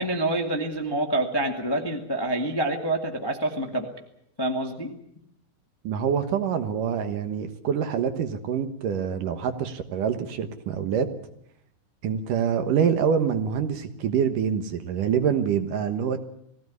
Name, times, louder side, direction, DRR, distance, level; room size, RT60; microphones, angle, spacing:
voice 1, 0.0-3.9 4.4-4.9, right 1 dB, 30° left, 3 dB, 0.4 m, -27 dB
voice 2, 5.8-11.1 12.0-16.2, right 7 dB, 65° right, 9 dB, 2.6 m, -25 dB
21.0 x 16.5 x 9.5 m, 0.76 s
omnidirectional pair, 4.6 m